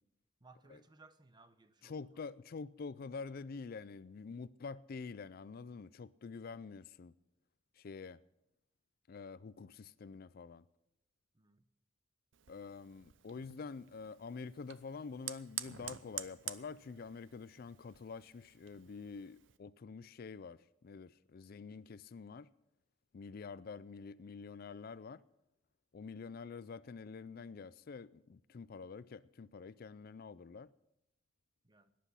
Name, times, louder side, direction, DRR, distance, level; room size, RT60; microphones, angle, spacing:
voice 1, 0.4-2.0 11.3-11.6 31.6-31.9, right 3 dB, 25° right, 0.8 m, -62 dB
voice 2, 1.8-7.1 7.7-8.2 9.1-10.6 12.5-22.5 23.1-25.2 25.9-30.7, left 4 dB, 50° left, 0.4 m, -47 dB
Fire, 12.3-19.6, right 12 dB, 85° right, 0.7 m, -49 dB
17.5 x 10.5 x 5.6 m
head